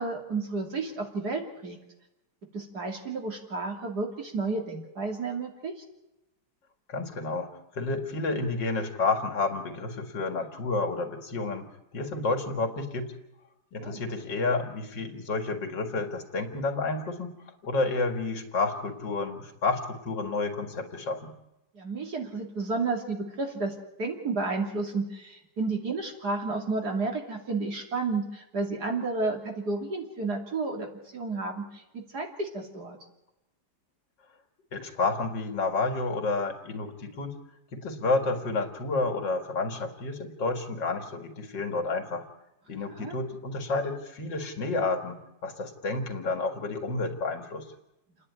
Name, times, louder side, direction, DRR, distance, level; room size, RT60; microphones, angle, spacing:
voice 1, 0.0-1.8 2.5-5.7 13.8-14.0 21.8-23.7 24.0-33.0 43.0-43.2, right 3 dB, 60° right, 2 dB, 3.4 m, -31 dB
voice 2, 6.9-7.5 7.8-11.7 11.9-13.1 13.7-17.4 17.6-21.3 34.7-37.4 37.7-42.2 42.7-47.6, left 3 dB, 80° left, 4 dB, 2.8 m, -30 dB
29.0 x 10.0 x 9.7 m, 0.93 s
omnidirectional pair, 1.9 m